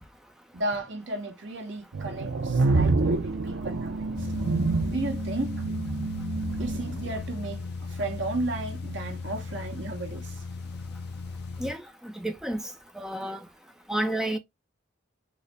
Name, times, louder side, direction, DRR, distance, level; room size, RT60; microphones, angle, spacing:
voice 1, 0.5-4.3 4.9-5.6 6.6-10.4, right 2 dB, 70° right, 1.0 m, -34 dB
sound 1, 1.9-7.2, right 3 dB, 85° right, 0.5 m, -27 dB
sound 2, 4.1-11.7, left 4 dB, 55° left, 0.5 m, -36 dB
voice 2, 11.6-13.5 13.9-14.4, right 1 dB, 5° right, 0.4 m, -31 dB
3.9 x 2.1 x 3.2 m
head